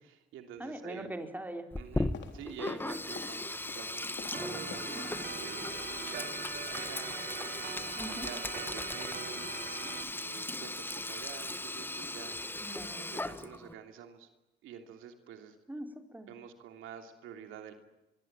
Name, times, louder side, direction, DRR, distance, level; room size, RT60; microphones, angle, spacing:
voice 1, 0.0-1.1 1.8-7.6 8.2-9.6 10.1-12.4 13.0-14.3 14.6-15.6 16.3-17.7, right 8 dB, 90° right, 6 dB, 3.0 m, -48 dB
voice 2, 0.6-1.7 7.9-8.3 12.6-13.0 15.7-16.3, right 1 dB, 10° right, 5 dB, 4.4 m, -41 dB
Sink (filling or washing), 1.7-13.7, left 2 dB, 10° left, 1.4 m, -37 dB
sound 1, 2.1-3.4 3.6-5.4 5.7-6.5 6.8-7.0 7.3-7.5 7.8-8.1 8.3-8.4, left 7 dB, 65° left, 3.9 m, -49 dB
Organ, 4.3-10.0, right 8 dB, 50° right, 1.5 m, -43 dB
24.0 x 23.0 x 8.9 m, 0.94 s
cardioid pair, 90°, 20 cm